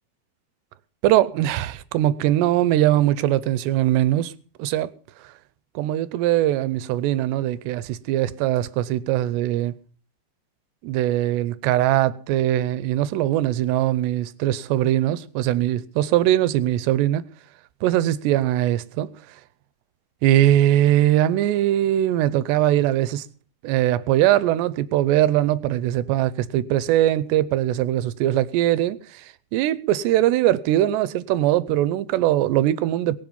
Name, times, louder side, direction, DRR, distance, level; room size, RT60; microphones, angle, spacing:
voice 1, 1.0-4.3 4.6-4.9 5.8-9.7 10.8-17.2 17.8-19.1 20.2-23.3 23.6-29.3 29.5-33.2, right 13 dB, 80° right, 2.8 m, -21 dB
22.5 x 7.5 x 5.5 m
omnidirectional pair, 5.2 m